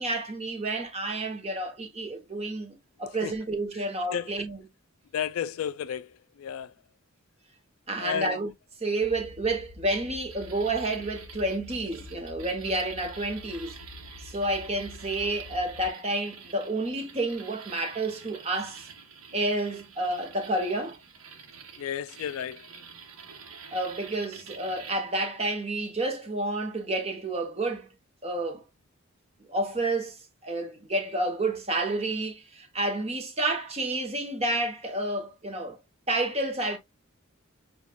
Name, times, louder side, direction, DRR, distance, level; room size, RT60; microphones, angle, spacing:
voice 1, 0.0-4.6 7.9-8.5 8.8-13.8 14.2-18.9 19.3-21.0 23.7-27.9 28.2-28.6 29.5-30.2 30.4-35.8 36.1-36.8, right 2 dB, 30° right, 0.9 m, -30 dB
voice 2, 5.1-6.1 6.4-6.7 8.0-8.4 21.8-22.7, left 8 dB, 80° left, 0.3 m, -32 dB
sound 1, 9.0-15.9, left 3 dB, 45° left, 0.6 m, -47 dB
sound 2, 10.3-24.9, right 6 dB, 90° right, 1.0 m, -48 dB
7.0 x 2.4 x 2.3 m
head